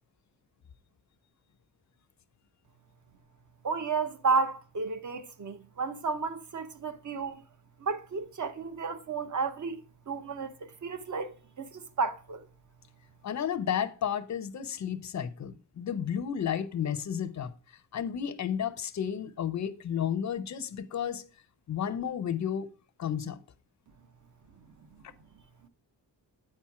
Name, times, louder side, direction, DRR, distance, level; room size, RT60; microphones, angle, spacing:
voice 1, 3.6-7.4 7.8-9.8 10.1-12.4, right 4 dB, 45° right, 0.7 m, -32 dB
voice 2, 13.2-17.5 17.9-21.3 21.7-22.7 23.0-23.4, left 8 dB, 40° left, 0.5 m, -32 dB
8.8 x 4.3 x 4.6 m
wide cardioid pair, 165°, 44 cm